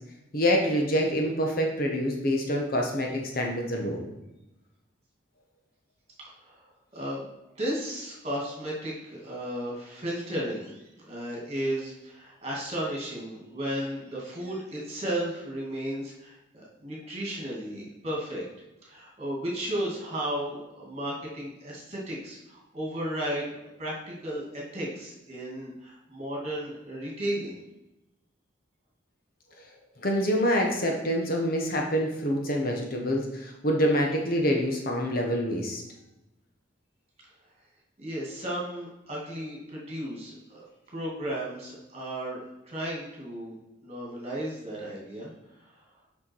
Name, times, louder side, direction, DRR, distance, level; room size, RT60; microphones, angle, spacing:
voice 1, 0.3-4.0 30.0-35.8, equal, 50° left, 1 dB, 1.1 m, -26 dB
voice 2, 6.4-7.3 7.6-18.5 18.8-27.6 38.0-43.6 43.8-45.8, right 1 dB, 30° right, -3 dB, 2.2 m, -34 dB
6.4 x 5.9 x 4.6 m, 0.95 s
head